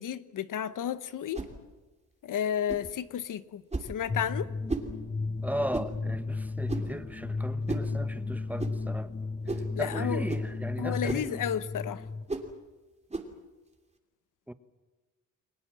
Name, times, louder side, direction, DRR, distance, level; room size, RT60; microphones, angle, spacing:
voice 1, 0.0-1.4 2.2-4.5 9.8-10.2 10.8-12.0, left 9 dB, 80° left, 1.1 m, -32 dB
sound 1, 1.3-1.6 2.7-2.9 3.7-4.0 4.7-4.9 5.7-6.0 6.7-7.0 7.7-7.9 8.6-8.8 9.5-9.7 10.3-10.5 11.1-11.3 12.3-12.5 13.1-13.3, right 3 dB, 20° right, 3.0 m, -34 dB
sound 2, 4.1-12.3, left 3 dB, 20° left, 0.8 m, -34 dB
voice 2, 5.4-9.1 9.5-11.4 14.5-14.6, equal, 5° right, 1.2 m, -37 dB
30.0 x 22.0 x 7.5 m
cardioid pair, 110°, 31 cm